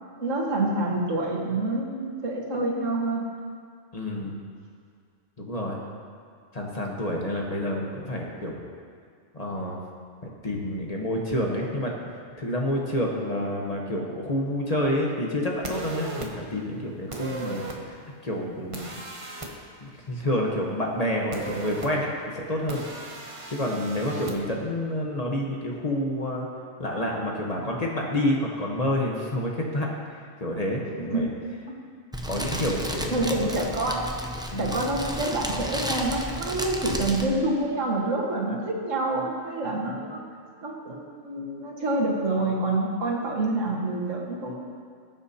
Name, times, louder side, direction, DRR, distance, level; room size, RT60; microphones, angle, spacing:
voice 1, 0.2-3.3 31.0-31.3 33.1-34.1 34.6-40.2 40.6-44.5, right 2 dB, 85° right, -2 dB, 1.9 m, -27 dB
voice 2, 3.9-4.4 5.4-5.8 6.5-8.6 9.3-9.8 10.2-12.1 12.4-19.0 19.4-22.8 23.5-26.5 26.8-31.3 32.2-33.6 34.5-34.8, left 1 dB, 35° left, -1 dB, 1.2 m, -29 dB
sound 1, 15.6-16.3 17.1-17.8 18.7-19.5 21.3-21.9 22.7-24.3, right 2 dB, 30° right, 1.0 m, -36 dB
Fire, 32.1-37.2, equal, 5° right, 0.4 m, -32 dB
19.0 x 7.4 x 2.8 m, 2.2 s
omnidirectional pair, 1.3 m